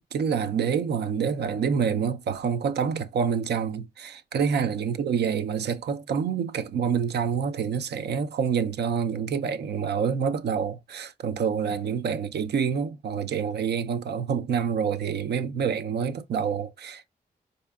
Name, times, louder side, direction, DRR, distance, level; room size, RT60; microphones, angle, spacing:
voice 1, 0.1-17.1, right 7 dB, 70° right, 0.5 m, -27 dB
4.6 x 2.6 x 2.2 m
supercardioid pair, 45°, 18 cm